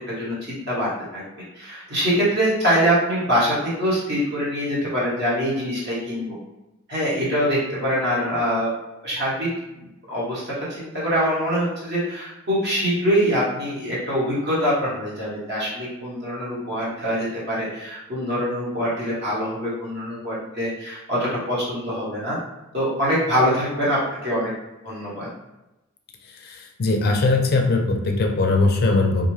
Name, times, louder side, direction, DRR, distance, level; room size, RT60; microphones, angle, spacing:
voice 1, 0.1-1.2 1.5-6.3 6.9-8.7 9.0-9.5 10.1-22.4 22.7-24.5 24.8-25.3, equal, 55° right, -7 dB, 1.1 m, -24 dB
voice 2, 26.4-29.3, left 3 dB, 45° left, 2 dB, 0.4 m, -20 dB
2.5 x 2.3 x 3.1 m, 0.96 s
head